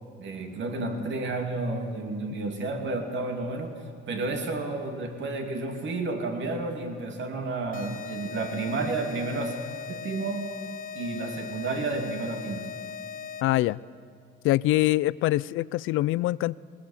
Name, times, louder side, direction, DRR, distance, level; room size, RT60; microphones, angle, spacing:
voice 1, 0.2-9.6 9.9-10.5 10.9-12.7, right 3 dB, 70° right, 4 dB, 2.6 m, -31 dB
sound 1, 7.7-13.7, left 7 dB, 45° left, 1.3 m, -39 dB
voice 2, 13.4-13.8 14.4-16.6, left 17 dB, 90° left, 21 dB, 0.4 m, -24 dB
21.0 x 20.5 x 7.3 m, 2.3 s
cardioid pair, 90°, 20 cm